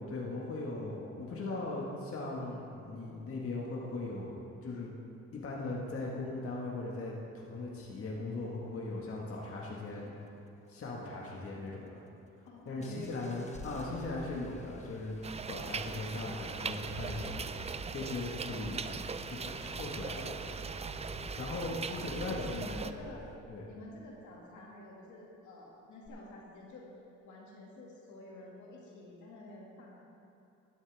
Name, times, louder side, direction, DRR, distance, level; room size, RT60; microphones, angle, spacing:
voice 1, 0.0-4.9 5.3-10.1 10.7-12.0 12.6-15.2 15.5-18.8 19.2-20.3 21.4-22.8 23.5-23.7, left 2 dB, 50° left, -4 dB, 1.8 m, -39 dB
voice 2, 12.4-13.7 18.6-19.1 20.2-20.4 21.2-21.5 21.9-23.3 23.6-26.9 27.2-30.0, left 2 dB, 75° left, -3 dB, 2.3 m, -48 dB
Engine starting, 12.8-23.4 26.1-26.2, equal, 20° left, 1.1 m, -49 dB
sound 1, 15.2-22.9, right 5 dB, 20° right, 0.4 m, -40 dB
sound 2, 16.9-22.4, right 3 dB, 80° right, 1.3 m, -51 dB
12.0 x 11.5 x 3.5 m, 2.8 s
cardioid pair, 90°, 30 cm